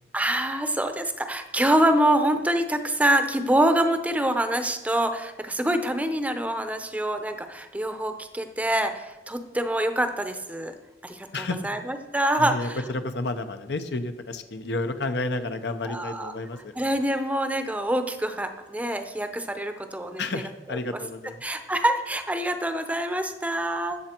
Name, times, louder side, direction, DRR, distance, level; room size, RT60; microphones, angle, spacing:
voice 1, 0.1-10.7 11.0-12.8 15.9-16.3 16.8-20.2 20.7-20.8 21.4-24.0, right 1 dB, 10° right, 7 dB, 0.7 m, -25 dB
voice 2, 11.3-11.7 12.4-16.7 20.2-21.4, left 2 dB, 70° left, 8 dB, 0.8 m, -31 dB
15.5 x 7.0 x 4.5 m, 1.1 s
head